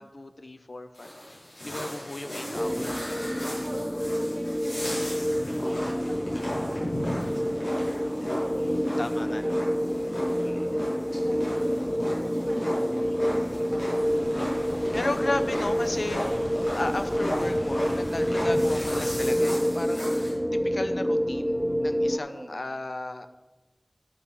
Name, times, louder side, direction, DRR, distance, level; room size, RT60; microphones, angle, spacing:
voice 1, 0.0-1.4 1.6-2.9 4.9-5.1 9.0-9.7 10.4-10.7 14.9-23.3, left 2 dB, 70° left, 9 dB, 0.6 m, -35 dB
sound 1, 0.9-20.3, equal, 85° left, 3.9 m, -35 dB
voice 2, 2.4-2.9 3.3-15.6 22.1-22.7, right 1 dB, 70° right, -3 dB, 1.2 m, -44 dB
sound 2, 2.5-22.2, equal, 5° left, 0.3 m, -28 dB
sound 3, 14.0-19.1, equal, 35° left, 2.1 m, -41 dB
10.5 x 5.6 x 6.0 m, 1.1 s
wide cardioid pair, 50°, 0 cm